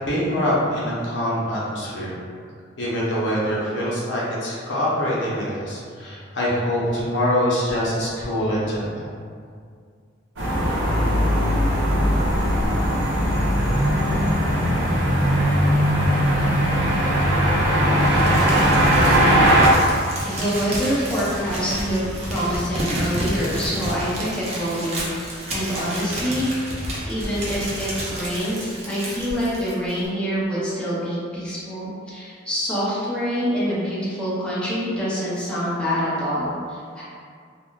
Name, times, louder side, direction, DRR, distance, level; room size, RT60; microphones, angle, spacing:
voice 1, 0.0-2.1 2.8-9.1, equal, 70° left, -7 dB, 0.7 m, -24 dB
sound 1, 10.4-19.7, equal, 70° right, 0.7 m, -19 dB
Crumpling crinkling, 18.0-30.1, right 1 dB, 35° right, 0.6 m, -30 dB
voice 2, 20.2-26.5 27.1-37.0, equal, 5° left, -11 dB, 0.7 m, -26 dB
3.5 x 2.1 x 2.3 m, 2.2 s
head